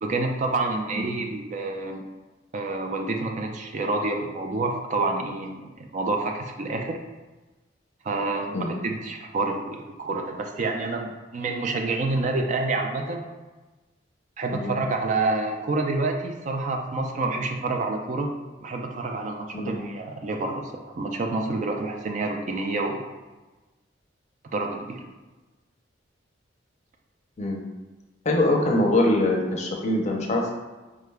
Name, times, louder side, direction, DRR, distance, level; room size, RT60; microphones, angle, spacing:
voice 1, 0.0-2.0 2.5-7.0 8.0-13.2 14.4-18.3 18.6-23.0 24.5-25.0, right 3 dB, 40° right, 3 dB, 0.4 m, -28 dB
voice 2, 27.4-27.7 28.2-30.5, left 1 dB, 35° left, 0 dB, 0.6 m, -23 dB
4.7 x 2.2 x 3.3 m, 1.2 s
head